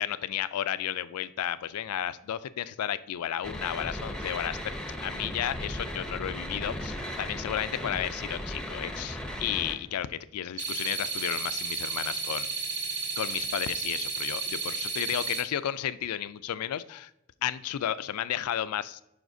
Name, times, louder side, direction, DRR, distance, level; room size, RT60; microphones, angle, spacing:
voice 1, 0.0-4.7 5.0-12.5 13.2-17.1 17.4-19.0, left 10 dB, 90° left, 15 dB, 0.4 m, -33 dB
sound 1, 3.4-9.7, equal, 5° left, 0.7 m, -36 dB
sound 2, 10.6-15.4, right 4 dB, 75° right, 1.8 m, -33 dB
11.0 x 5.0 x 2.6 m, 0.86 s
head